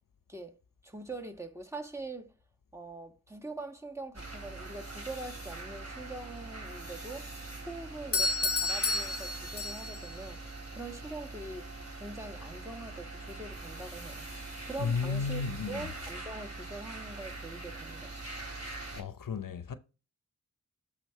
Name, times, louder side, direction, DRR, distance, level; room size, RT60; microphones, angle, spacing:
voice 1, 0.8-2.3 2.7-7.3 7.6-10.4 10.7-11.7 12.0-14.3 14.6-18.2, right 2 dB, 10° right, 1.4 m, -43 dB
sound 1, 4.1-19.0, right 2 dB, 45° right, 3.6 m, -43 dB
Doorbell, 8.1-10.1, left 2 dB, 45° left, 0.9 m, -31 dB
voice 2, 14.8-15.9 18.7-19.8, left 5 dB, 70° left, 0.7 m, -34 dB
8.1 x 3.8 x 4.4 m
wide cardioid pair, 70°, 34 cm